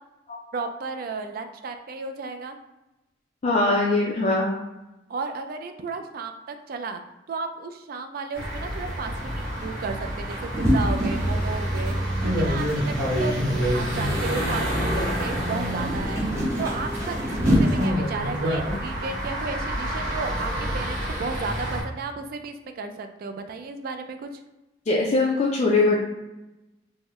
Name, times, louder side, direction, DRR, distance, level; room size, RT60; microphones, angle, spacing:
voice 1, 0.5-2.6 5.1-7.0 7.3-16.2 16.6-24.3, right 4 dB, 50° right, 7 dB, 0.3 m, -34 dB
voice 2, 3.4-4.6 24.9-26.0, left 2 dB, 35° left, -3 dB, 0.3 m, -21 dB
sound 1, 8.3-21.8, equal, 85° right, 1.3 m, -27 dB
sound 2, 9.1-17.9, equal, 15° right, 0.8 m, -29 dB
3.6 x 2.0 x 3.0 m, 0.99 s
head